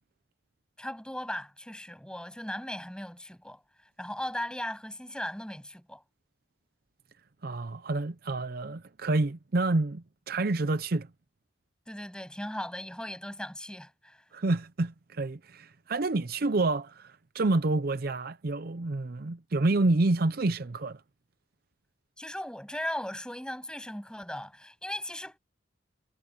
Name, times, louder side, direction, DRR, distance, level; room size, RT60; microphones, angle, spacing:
voice 1, 0.8-3.6 4.0-6.0 11.9-14.2 22.2-25.4, left 1 dB, 5° left, 7.9 m, -37 dB
voice 2, 7.4-11.1 14.3-21.0, right 2 dB, 55° right, 0.7 m, -28 dB
head